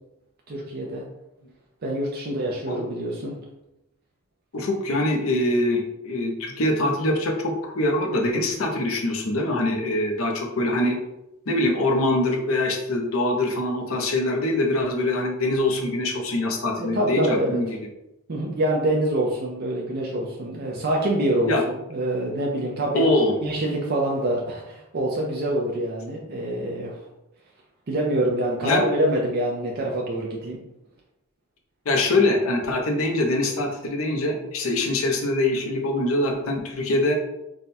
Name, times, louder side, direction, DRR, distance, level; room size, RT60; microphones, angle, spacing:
voice 1, 0.5-1.0 1.8-3.3 16.8-17.6 18.3-23.0 23.4-27.0 27.9-30.6, right 1 dB, 50° right, -2 dB, 0.5 m, -26 dB
voice 2, 4.5-11.0 11.5-17.7 21.5-21.6 22.9-23.3 28.6-28.8 31.9-37.2, left 1 dB, 75° left, 2 dB, 0.7 m, -23 dB
3.6 x 2.2 x 4.1 m, 0.89 s
head